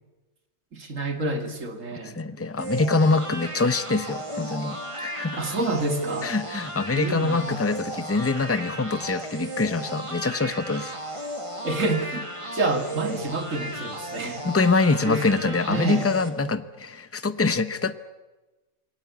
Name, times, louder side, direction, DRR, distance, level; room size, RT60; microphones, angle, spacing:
voice 1, 0.7-2.2 5.4-6.3 7.0-7.6 11.6-12.3 12.5-14.5 15.0-16.1, right 2 dB, 80° right, 6 dB, 2.8 m, -28 dB
voice 2, 2.0-5.4 6.2-11.0 14.4-18.0, left 3 dB, 15° left, 12 dB, 0.8 m, -24 dB
sound 1, 2.6-16.3, right 1 dB, 25° right, 2.4 m, -35 dB
27.5 x 19.0 x 8.4 m, 1.1 s
omnidirectional pair, 1.3 m